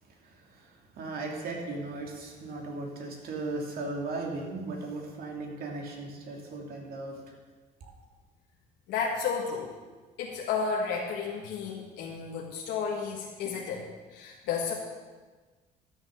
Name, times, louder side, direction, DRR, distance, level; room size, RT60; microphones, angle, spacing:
voice 1, 0.1-7.3 7.8-7.9, right 2 dB, 65° right, 1 dB, 2.7 m, -37 dB
voice 2, 8.9-9.7 10.2-13.8 14.1-14.7, left 5 dB, 85° left, -2 dB, 1.6 m, -32 dB
12.0 x 7.1 x 6.5 m, 1.3 s
cardioid pair, 110°, 17 cm